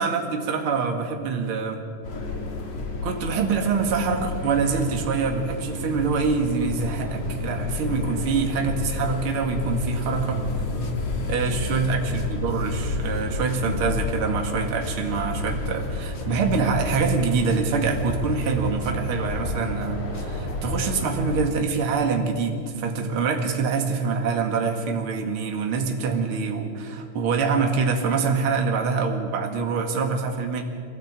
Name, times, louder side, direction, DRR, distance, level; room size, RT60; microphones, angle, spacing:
voice 1, 0.0-1.9 3.0-10.4 11.3-30.6, right 5 dB, 50° right, 3 dB, 2.7 m, -25 dB
sound 1, 2.0-21.5, left 2 dB, 85° left, 4.2 m, -30 dB
sound 2, 10.1-20.8, left 3 dB, 50° left, 0.7 m, -37 dB
23.5 x 17.0 x 8.9 m, 2.2 s
omnidirectional pair, 3.3 m